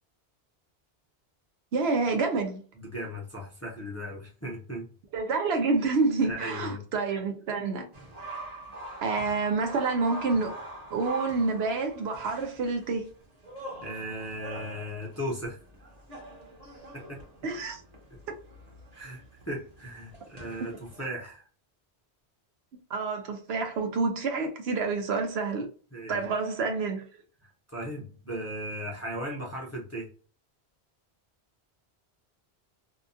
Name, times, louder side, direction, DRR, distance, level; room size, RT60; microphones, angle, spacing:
voice 1, 1.7-2.6 5.1-7.9 9.0-10.5 10.9-13.1 17.4-17.8 22.9-25.7 26.1-27.0, right 4 dB, 70° right, 0.9 m, -28 dB
voice 2, 2.8-4.9 6.2-6.8 13.8-15.9 16.9-17.2 18.9-21.5 25.9-26.2 27.4-30.1, equal, 15° left, 0.6 m, -37 dB
Basketball Players Playing, 7.9-21.1, right 1 dB, 40° right, 1.0 m, -44 dB
2.8 x 2.3 x 2.5 m
omnidirectional pair, 1.1 m